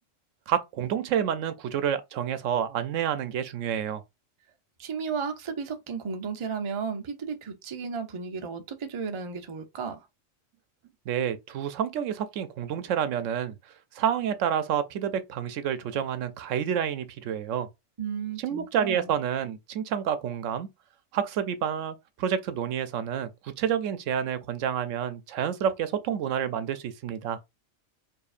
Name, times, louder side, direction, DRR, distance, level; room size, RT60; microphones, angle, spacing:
voice 1, 0.5-4.0 11.1-13.6 13.9-17.7 18.4-20.7 21.1-27.4, right 9 dB, 85° right, 0.9 m, -29 dB
voice 2, 4.8-10.0 18.0-19.1, right 6 dB, 35° right, 0.5 m, -34 dB
4.7 x 2.7 x 2.5 m
omnidirectional pair, 1.3 m